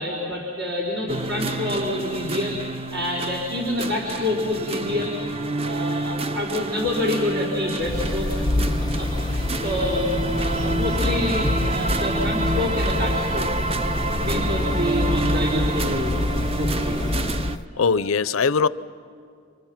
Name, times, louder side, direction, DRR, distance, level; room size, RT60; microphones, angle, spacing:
voice 1, 0.0-5.1 5.6-8.3 9.0-13.5 14.0-16.1 16.5-17.0 17.7-18.1, left 1 dB, 75° right, -3 dB, 3.6 m, -27 dB
sound 1, 1.1-17.6, right 2 dB, 30° right, 0.6 m, -28 dB
sound 2, 7.8-17.6, left 2 dB, 20° left, 0.5 m, -26 dB
voice 2, 17.8-18.7, left 5 dB, 85° left, 16 dB, 0.6 m, -20 dB
29.5 x 26.0 x 5.8 m, 2.2 s
head